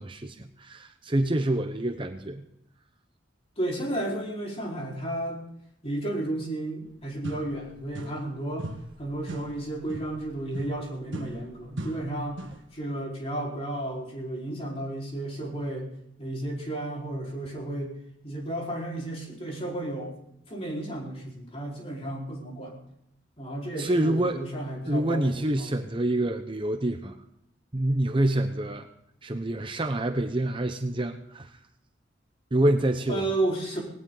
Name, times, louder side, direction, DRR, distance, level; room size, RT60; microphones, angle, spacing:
voice 1, 0.0-2.4 23.8-24.4 24.9-27.2 27.7-28.9 29.2-31.6 32.5-33.3, right 1 dB, 25° right, 6 dB, 0.8 m, -27 dB
voice 2, 3.6-5.4 5.8-8.7 9.0-12.4 12.7-15.9 16.2-17.9 18.2-20.2 20.5-22.8 23.4-25.8 33.1-33.8, right 1 dB, 30° left, -2 dB, 4.6 m, -33 dB
sound 1, 6.9-7.0 7.2-8.3 8.6-12.7, right 1 dB, 75° right, 1.7 m, -40 dB
19.0 x 17.5 x 3.9 m, 0.79 s
head